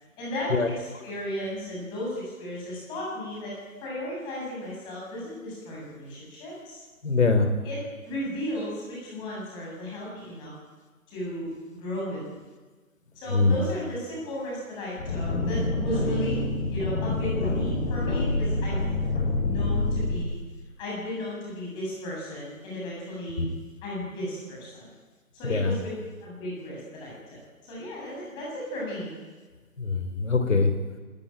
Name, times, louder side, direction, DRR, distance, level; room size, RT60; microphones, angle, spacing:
voice 1, 0.2-3.5 3.8-6.8 7.6-10.5 11.1-12.4 13.1-16.4 16.7-18.8 19.4-20.4 20.8-23.4 23.8-24.9 25.3-25.9 26.2-29.1, left 1 dB, 10° left, -5 dB, 7.9 m, -35 dB
voice 2, 7.0-7.5 13.3-13.6 23.4-23.5 25.5-25.7 29.8-30.7, left 3 dB, 60° left, 7 dB, 4.0 m, -22 dB
sound 1, 15.0-20.2, left 2 dB, 45° left, 7.4 m, -27 dB
27.5 x 15.5 x 9.2 m, 1.3 s
figure-of-eight pair, 165°, 44 cm